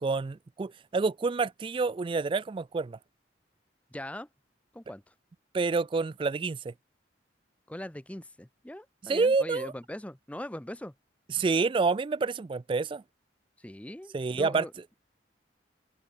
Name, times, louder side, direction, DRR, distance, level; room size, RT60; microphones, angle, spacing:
voice 1, 0.0-3.0 5.5-6.7 9.1-9.7 11.3-13.0 14.1-14.7, right 4 dB, 30° right, 0.3 m, -28 dB
voice 2, 3.9-4.3 4.7-5.0 7.7-10.9 13.6-14.7, left 1 dB, 5° left, 0.6 m, -41 dB
open air
head